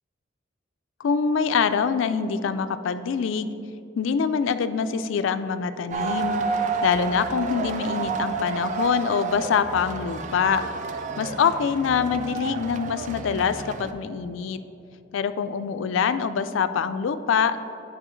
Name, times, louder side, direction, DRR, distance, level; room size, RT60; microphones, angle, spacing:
voice 1, 1.0-3.6 4.0-6.4 6.8-10.6 11.2-14.6 15.1-17.6, left 6 dB, 75° left, 11 dB, 0.3 m, -24 dB
sound 1, 5.9-13.9, right 4 dB, 40° right, 0.4 m, -30 dB
9.8 x 4.7 x 3.1 m, 2.8 s
head